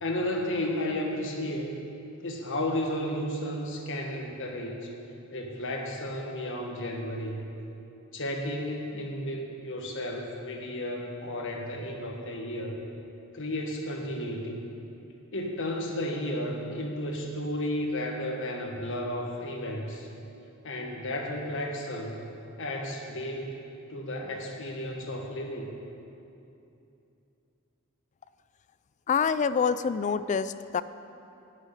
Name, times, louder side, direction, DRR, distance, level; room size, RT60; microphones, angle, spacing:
voice 1, 0.0-1.7 2.2-4.9 5.3-7.4 8.1-12.8 13.3-14.6 15.3-20.1 20.6-22.3 22.6-23.6 23.9-25.7, left 1 dB, 65° left, 1 dB, 1.5 m, -33 dB
voice 2, 29.1-30.8, left 6 dB, 35° left, 14 dB, 0.3 m, -26 dB
11.0 x 6.5 x 8.9 m, 2.8 s
head